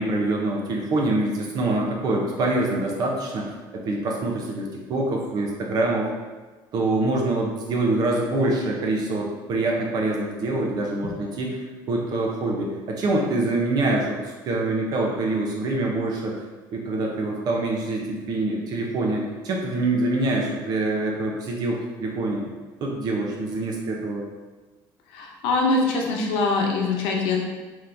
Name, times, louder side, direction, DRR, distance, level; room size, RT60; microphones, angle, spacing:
voice 1, 0.0-3.5 3.7-6.1 6.7-14.2 14.5-16.4 16.7-22.5 22.8-24.3, right 2 dB, 45° right, -1 dB, 0.8 m, -25 dB
voice 2, 25.1-27.4, left 3 dB, 90° left, 0 dB, 0.8 m, -23 dB
3.8 x 3.0 x 3.4 m, 1.3 s
cardioid pair, 160°, 9 cm